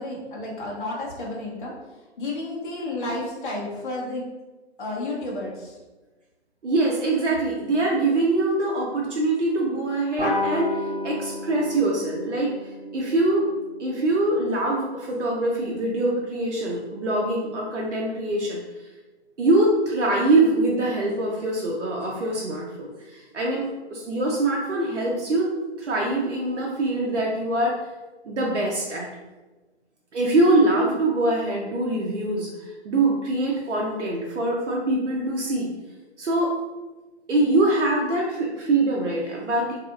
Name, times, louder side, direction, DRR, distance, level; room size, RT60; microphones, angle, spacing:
voice 1, 0.0-1.7 2.2-4.2 4.8-5.7, left 2 dB, 45° left, -3 dB, 0.7 m, -31 dB
voice 2, 6.6-13.4 13.8-18.6 19.4-25.5 25.8-27.8 28.2-29.1 30.1-35.7 36.2-36.5 37.3-39.8, right 2 dB, 90° right, -2 dB, 0.6 m, -23 dB
sound 1, 10.2-15.1, left 2 dB, 10° right, 0.9 m, -32 dB
2.8 x 2.4 x 2.4 m, 1.2 s
hypercardioid pair, 155°, 34 cm